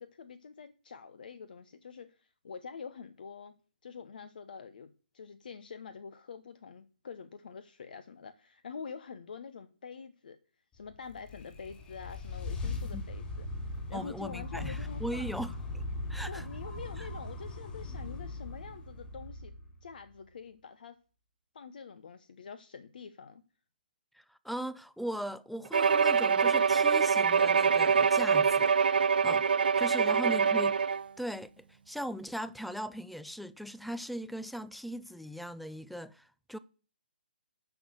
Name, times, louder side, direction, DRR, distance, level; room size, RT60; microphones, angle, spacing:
voice 1, 0.0-3.5 3.8-10.4 10.7-13.5 13.9-15.3 16.3-19.5 19.8-21.0 21.5-23.4 29.8-30.1, left 5 dB, 55° left, 1.2 m, -46 dB
sound 1, 10.9-20.1, left 2 dB, 15° left, 3.9 m, -39 dB
voice 2, 13.9-16.4 17.0-17.1 24.1-28.7 29.2-30.8 31.2-36.6, equal, ahead, 0.5 m, -39 dB
Bowed string instrument, 25.7-31.1, right 6 dB, 65° right, 0.6 m, -25 dB
13.0 x 6.1 x 8.0 m
figure-of-eight pair, 140°, 6 cm